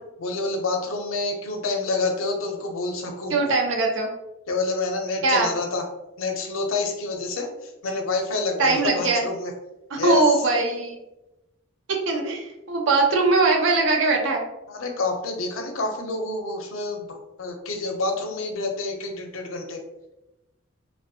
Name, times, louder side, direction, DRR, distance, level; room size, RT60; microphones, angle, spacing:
voice 1, 0.2-3.3 4.5-5.8 6.2-9.5 10.0-10.2 14.7-19.8, left 3 dB, 90° left, 3 dB, 0.5 m, -28 dB
voice 2, 3.3-4.1 5.2-5.5 8.6-9.3 9.9-11.0 11.9-14.4, right 3 dB, 70° right, 1 dB, 0.5 m, -21 dB
2.5 x 2.2 x 2.6 m, 0.95 s
head